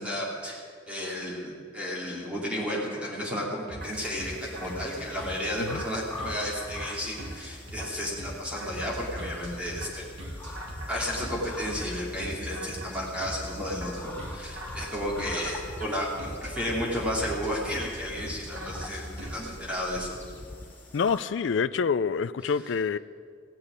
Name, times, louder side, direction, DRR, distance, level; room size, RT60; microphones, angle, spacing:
voice 1, 0.0-10.0 10.9-20.1 22.4-22.5, equal, 5° right, 3.1 m, -33 dB
sound 1, 3.7-19.5, right 1 dB, 75° right, 2.8 m, -40 dB
sound 2, 3.8-21.3, left 2 dB, 10° left, 2.4 m, -46 dB
sound 3, 8.8-20.7, left 2 dB, 25° left, 0.6 m, -45 dB
voice 2, 20.9-23.0, left 5 dB, 75° left, 0.4 m, -27 dB
16.5 x 8.9 x 9.7 m
head